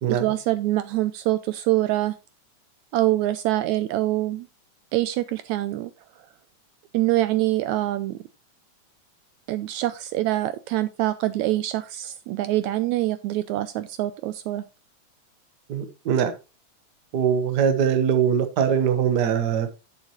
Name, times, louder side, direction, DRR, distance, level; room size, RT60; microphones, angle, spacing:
voice 1, 0.1-2.2 2.9-4.5 4.9-5.9 6.9-8.2 9.5-14.6, right 16 dB, 80° right, 12 dB, 1.7 m, -25 dB
voice 2, 15.7-16.3 17.1-19.7, right 7 dB, 55° right, 9 dB, 1.1 m, -22 dB
10.5 x 7.6 x 3.0 m, 0.28 s
omnidirectional pair, 3.6 m